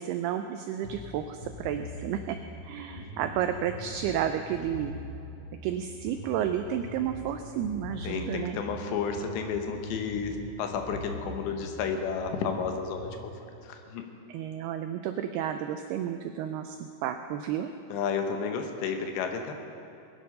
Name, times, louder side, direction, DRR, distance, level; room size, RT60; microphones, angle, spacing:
voice 1, 0.0-2.4 2.6-4.9 5.6-8.6 14.3-17.7, right 10 dB, 85° right, 7 dB, 2.2 m, -32 dB
sound 1, 0.8-13.3, left 1 dB, 20° left, 3.1 m, -43 dB
voice 2, 2.9-3.4 8.0-14.1 17.9-19.5, left 6 dB, 80° left, 5 dB, 3.3 m, -32 dB
20.5 x 10.5 x 5.4 m, 2.6 s
omnidirectional pair, 5.2 m